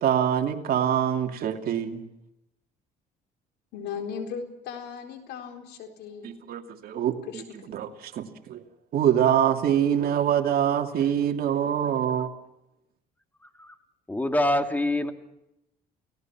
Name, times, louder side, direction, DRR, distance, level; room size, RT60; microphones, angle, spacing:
voice 1, 0.0-2.0 6.2-8.6 8.9-12.3, right 9 dB, 65° right, 5 dB, 2.6 m, -25 dB
voice 2, 3.7-6.3 7.3-7.4, left 6 dB, 85° left, 5 dB, 4.2 m, -37 dB
voice 3, 14.1-15.1, left 1 dB, 10° left, 6 dB, 2.3 m, -25 dB
29.5 x 18.0 x 6.1 m, 0.85 s
cardioid pair, 110°, 17 cm